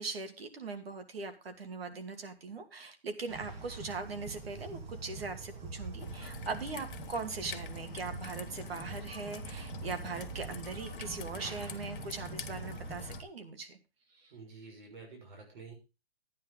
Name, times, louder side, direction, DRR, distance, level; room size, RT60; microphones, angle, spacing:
voice 1, 0.0-13.8 14.1-14.3, right 4 dB, 75° right, 7 dB, 2.4 m, -40 dB
sound 1, 3.3-13.2, right 4 dB, 20° right, 2.2 m, -44 dB
Raindrop / Trickle dribble, 6.0-13.2, left 8 dB, 60° left, 1.1 m, -47 dB
voice 2, 14.3-15.7, right 4 dB, 50° right, 1 dB, 6.0 m, -49 dB
12.5 x 9.5 x 3.8 m, 0.30 s
hypercardioid pair, 150°, 30 cm